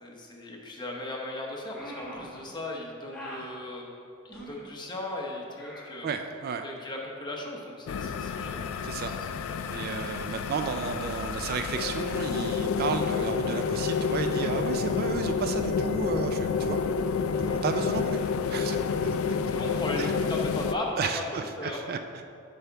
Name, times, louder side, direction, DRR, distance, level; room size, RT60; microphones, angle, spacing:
voice 1, 0.0-6.1 6.6-8.6 9.2-9.6 18.5-18.6 19.5-21.0 21.3-21.8, left 1 dB, 20° left, -1 dB, 0.9 m, -37 dB
sound 1, 1.7-2.4 3.1-3.5 4.3-4.7 5.6-5.9, equal, 5° left, 1.6 m, -42 dB
voice 2, 6.0-6.7 8.8-9.2 9.6-16.8 17.4-18.2 18.5-18.8 19.0-19.2 20.0-20.1 21.0-22.0, right 5 dB, 45° right, 7 dB, 0.3 m, -32 dB
sound 2, 7.9-20.7, left 5 dB, 70° left, 0.3 m, -29 dB
7.7 x 3.5 x 5.6 m, 2.5 s
head